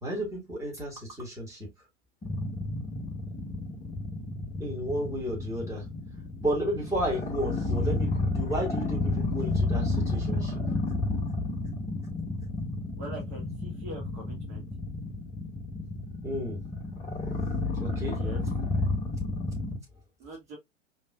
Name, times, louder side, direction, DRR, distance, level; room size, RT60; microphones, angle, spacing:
voice 1, 0.0-1.7 4.6-5.9 6.4-10.6 16.2-16.6 17.8-18.2, equal, 10° right, 2.0 m, -32 dB
sound 1, 2.2-19.8, left 2 dB, 15° left, 1.0 m, -31 dB
voice 2, 13.0-14.7 18.1-18.4 20.2-20.6, right 1 dB, 40° right, 1.6 m, -42 dB
5.0 x 2.9 x 2.3 m
figure-of-eight pair, 95°, 38 cm